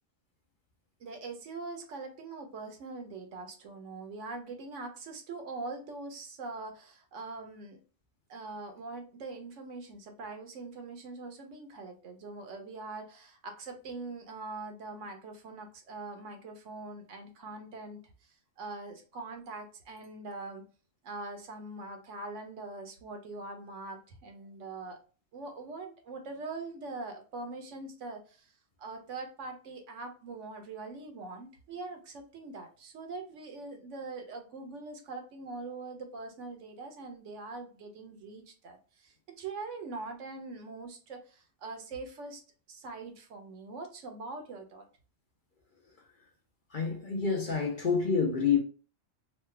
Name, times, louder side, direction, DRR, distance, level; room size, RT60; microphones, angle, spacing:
voice 1, 1.0-7.8 8.3-18.0 18.6-20.6 21.0-25.0 25.3-28.5 28.8-42.4 42.7-44.9, right 3 dB, 70° right, 1.0 m, -42 dB
voice 2, 46.7-48.6, left 6 dB, 50° left, 0.7 m, -28 dB
3.1 x 2.2 x 3.2 m
omnidirectional pair, 1.3 m